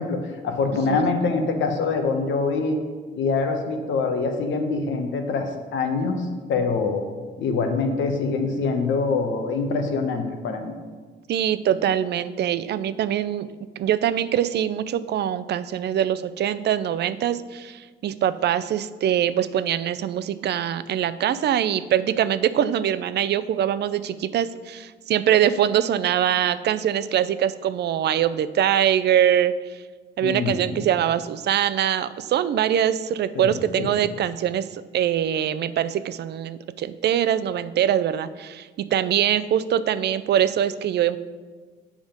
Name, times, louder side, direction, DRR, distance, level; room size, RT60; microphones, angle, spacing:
voice 1, 0.0-2.8 3.1-7.0 7.4-10.7 30.2-30.8 33.3-33.9, left 4 dB, 75° left, 5 dB, 1.1 m, -25 dB
voice 2, 11.3-13.5 13.8-29.5 30.2-41.2, right 10 dB, 60° right, 14 dB, 0.4 m, -23 dB
7.2 x 5.0 x 5.2 m, 1.5 s
cardioid pair, 90°, 20 cm